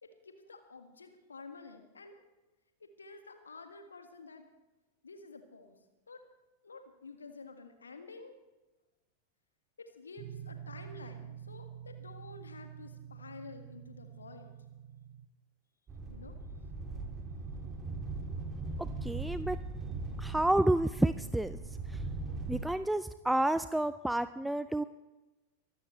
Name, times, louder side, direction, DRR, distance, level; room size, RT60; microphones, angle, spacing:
voice 1, 0.0-2.2 2.8-4.5 5.0-5.8 6.1-6.3 6.6-8.3 9.8-14.5 16.1-16.4, left 3 dB, 75° left, 6 dB, 1.8 m, -50 dB
sound 1, 10.2-15.3, right 9 dB, 50° right, 0.8 m, -48 dB
sound 2, 15.9-22.6, right 3 dB, 25° right, 2.4 m, -39 dB
voice 2, 18.8-19.6 20.2-22.0 22.5-24.8, right 1 dB, 5° right, 13 dB, 0.4 m, -30 dB
23.5 x 13.5 x 3.2 m, 1.1 s
figure-of-eight pair, 90°, 0 cm